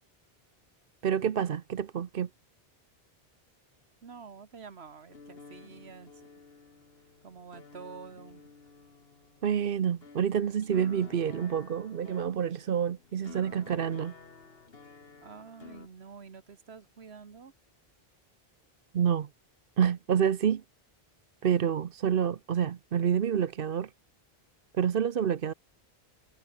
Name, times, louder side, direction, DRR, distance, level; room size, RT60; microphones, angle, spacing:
voice 1, 1.0-2.3 9.4-14.1 18.9-19.3 19.8-20.6 21.4-23.9 24.7-25.5, right 8 dB, 60° right, 1.0 m, -28 dB
voice 2, 4.0-6.3 7.2-8.5 15.2-17.5, right 5 dB, 85° right, 1.7 m, -48 dB
sound 1, 5.1-15.9, left 4 dB, 70° left, 2.1 m, -51 dB
omnidirectional pair, 1.0 m